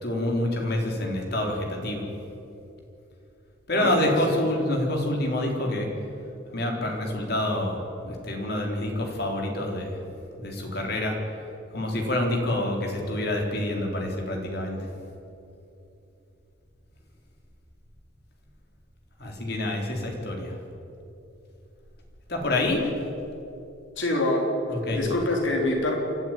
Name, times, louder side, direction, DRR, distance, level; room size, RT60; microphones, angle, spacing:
voice 1, 0.0-2.0 3.7-5.9 6.5-7.8 8.0-9.9 10.4-11.2 11.7-14.8 19.2-20.5 22.3-22.9 24.7-25.0, left 1 dB, 55° left, 1 dB, 3.9 m, -27 dB
voice 2, 3.7-4.4 24.0-24.5 25.0-26.0, left 1 dB, 70° left, 1 dB, 3.8 m, -25 dB
28.5 x 12.0 x 9.2 m, 2.8 s
head